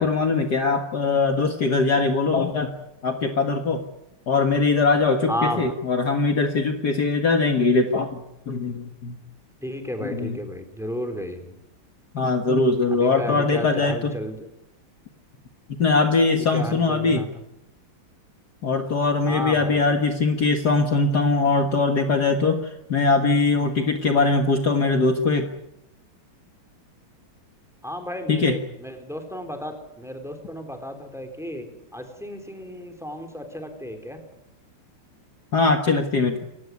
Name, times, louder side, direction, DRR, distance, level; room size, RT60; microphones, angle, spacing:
voice 1, 0.0-2.7 3.0-3.8 4.3-9.2 10.0-10.4 12.1-14.2 15.7-17.3 18.6-25.5 28.3-28.6 35.5-36.4, left 3 dB, 50° left, 5 dB, 2.1 m, -21 dB
voice 2, 5.3-5.7 9.6-11.5 13.0-14.4 16.5-17.3 19.3-19.8 27.8-28.6 29.1-31.7 31.9-34.2, equal, ahead, 6 dB, 3.9 m, -32 dB
29.0 x 16.0 x 9.6 m, 0.87 s
omnidirectional pair, 2.4 m